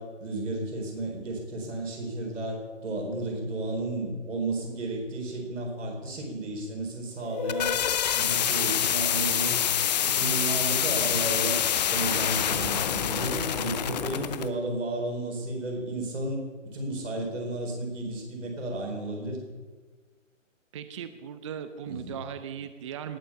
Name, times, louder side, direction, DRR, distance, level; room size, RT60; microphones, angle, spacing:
voice 1, 0.0-7.7 8.1-9.6 10.0-11.6 11.9-19.4 21.8-22.1, right 2 dB, 70° right, 1 dB, 4.3 m, -33 dB
sound 1, 7.2-14.5, left 10 dB, 35° left, 0.6 m, -26 dB
voice 2, 20.7-23.2, right 8 dB, 25° right, 11 dB, 0.5 m, -38 dB
18.5 x 7.8 x 5.7 m, 1.4 s
figure-of-eight pair, 135°, 39 cm